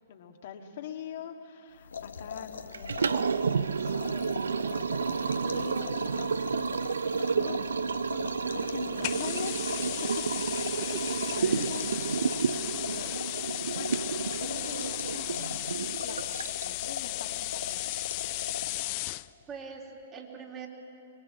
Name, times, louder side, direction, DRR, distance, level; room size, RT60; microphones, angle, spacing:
voice 1, 0.1-4.3 4.6-6.7 7.3-9.6 10.4-10.9 11.3-11.9 12.5-17.8, left 8 dB, 60° left, 4 dB, 1.7 m, -44 dB
sound 1, 1.8-19.2, left 5 dB, 80° left, 1.1 m, -41 dB
Liquid, 2.7-16.8, right 5 dB, 80° right, 0.5 m, -31 dB
sound 2, 9.0-19.3, left 22 dB, 45° left, 0.4 m, -35 dB
voice 2, 10.4-11.1 11.4-11.7 19.5-20.7, right 6 dB, 30° right, 0 dB, 3.6 m, -43 dB
24.5 x 21.0 x 7.5 m, 3.0 s
hypercardioid pair, 120°, 0 cm